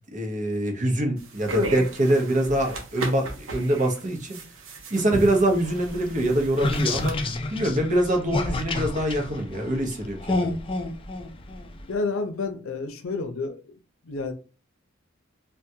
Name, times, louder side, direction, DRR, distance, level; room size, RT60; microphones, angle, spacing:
voice 1, 0.1-4.4 4.9-7.2 7.5-10.6, right 1 dB, 40° right, 0.8 m, -24 dB
sound 1, 1.2-7.1, equal, 75° right, 0.7 m, -34 dB
sound 2, 5.6-11.9, left 2 dB, 25° left, 0.4 m, -30 dB
voice 2, 11.9-13.8 14.0-14.3, left 3 dB, 85° left, 0.6 m, -30 dB
3.6 x 2.3 x 2.8 m
head